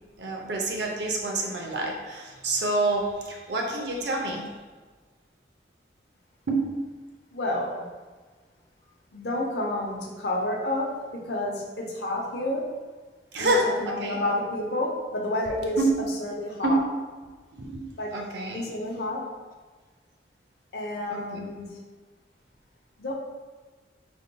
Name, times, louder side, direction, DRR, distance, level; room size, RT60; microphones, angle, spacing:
voice 1, 0.2-4.4 6.5-6.7 13.3-14.2 15.8-15.9 16.6-16.8 17.5-17.8 18.1-18.7 21.1-21.5, right 2 dB, 75° right, 1 dB, 0.6 m, -27 dB
voice 2, 7.3-7.8 9.1-12.7 13.4-15.8 16.2-16.8 18.0-18.1 18.5-19.3 20.7-21.8 23.0-23.1, left 1 dB, 65° left, -1 dB, 0.7 m, -30 dB
4.0 x 3.5 x 2.3 m, 1.4 s
head